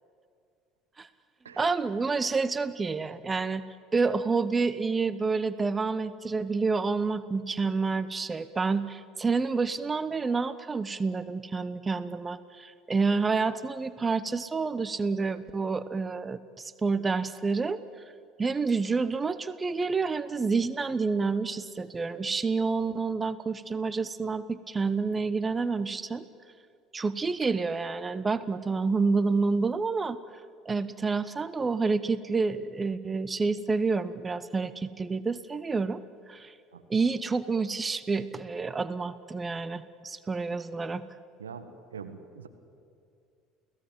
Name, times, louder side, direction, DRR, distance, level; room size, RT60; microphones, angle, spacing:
voice 1, 1.6-3.6 3.9-17.8 18.4-26.2 26.9-30.2 30.6-36.0 36.3-36.5 36.9-41.0, right 4 dB, 25° right, 15 dB, 1.0 m, -28 dB
voice 2, 41.4-42.5, right 6 dB, 80° right, 8 dB, 1.7 m, -43 dB
29.0 x 17.5 x 7.7 m, 2.3 s
figure-of-eight pair, 65°, 0 cm